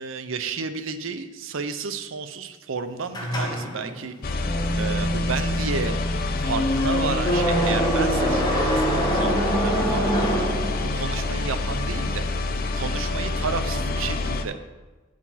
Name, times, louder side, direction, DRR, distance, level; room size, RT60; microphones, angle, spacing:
voice 1, 0.0-4.1 4.7-6.0 6.4-10.4 10.8-12.2 12.7-14.6, right 5 dB, 70° right, 9 dB, 0.7 m, -32 dB
sound 1, 3.1-11.2, right 1 dB, 20° left, 1.2 m, -25 dB
sound 2, 4.2-14.4, left 2 dB, 45° left, 0.6 m, -27 dB
8.2 x 4.9 x 5.7 m, 1.3 s
head